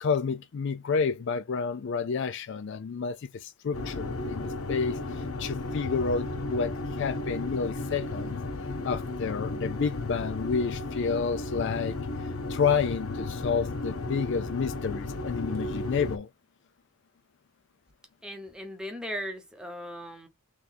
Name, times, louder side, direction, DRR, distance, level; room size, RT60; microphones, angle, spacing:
voice 1, 0.0-8.3 8.8-12.0 12.5-16.3, left 5 dB, 55° left, 0.4 m, -30 dB
sound 1, 3.7-16.2, left 2 dB, 70° left, 0.8 m, -34 dB
voice 2, 18.2-20.3, equal, 5° right, 0.8 m, -38 dB
3.3 x 3.0 x 4.0 m
head